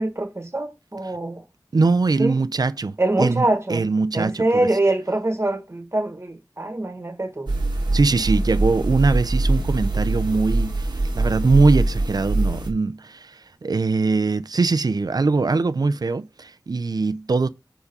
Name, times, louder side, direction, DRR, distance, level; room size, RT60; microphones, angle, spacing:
voice 1, 0.0-1.4 2.2-2.4 3.0-3.9 4.1-7.5, right 2 dB, 40° right, 1.4 m, -24 dB
voice 2, 1.7-4.7 7.9-17.5, right 3 dB, 65° right, 0.4 m, -22 dB
sound 1, 7.5-12.7, right 2 dB, 85° right, 1.1 m, -23 dB
5.0 x 4.9 x 5.3 m
wide cardioid pair, 55°, 7 cm